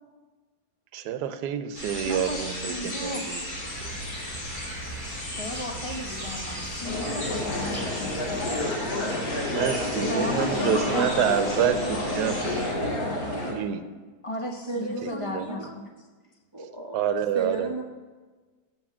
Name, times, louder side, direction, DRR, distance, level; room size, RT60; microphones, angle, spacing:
voice 1, 0.9-3.4 9.5-12.9 13.3-13.8 15.0-15.4 16.9-17.7, right 9 dB, 80° right, 10 dB, 1.2 m, -28 dB
sound 1, 1.7-12.7, left 1 dB, 80° left, 3.9 m, -36 dB
voice 2, 2.1-3.3 5.3-8.8 10.1-11.2 14.2-15.9, left 1 dB, 25° left, 2 dB, 0.7 m, -35 dB
sound 2, 3.6-8.6, right 3 dB, 5° right, 1.8 m, -42 dB
sound 3, 6.8-13.5, left 1 dB, 60° left, 2.6 m, -29 dB
voice 3, 14.7-15.7 16.5-17.1 17.3-17.8, right 2 dB, 30° right, 1 dB, 0.5 m, -34 dB
7.2 x 6.0 x 7.3 m, 1.3 s
omnidirectional pair, 1.8 m